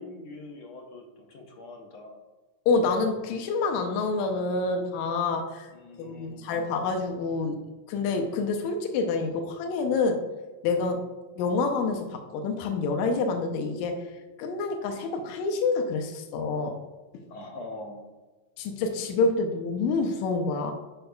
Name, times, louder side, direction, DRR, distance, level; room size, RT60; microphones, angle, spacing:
voice 1, 0.0-2.2 5.7-6.6 17.3-18.1, left 2 dB, 60° left, 2 dB, 1.6 m, -43 dB
voice 2, 2.7-5.7 6.0-7.6 7.9-10.3 10.6-11.0 11.4-14.0 14.4-16.8 18.6-20.7, left 4 dB, 80° left, 4 dB, 2.0 m, -27 dB
11.0 x 5.2 x 2.3 m, 1.2 s
omnidirectional pair, 3.4 m